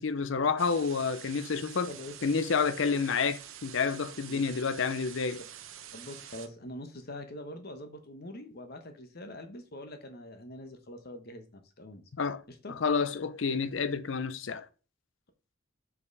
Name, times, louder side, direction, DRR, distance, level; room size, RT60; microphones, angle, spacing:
voice 1, 0.0-1.9 2.2-5.4 12.2-12.4 12.7-14.7, left 5 dB, 70° left, 0.6 m, -29 dB
sound 1, 0.6-6.5, right 10 dB, 85° right, 0.8 m, -47 dB
voice 2, 5.9-12.0 12.5-12.8, left 1 dB, 50° left, 1.1 m, -44 dB
5.1 x 5.0 x 4.7 m
head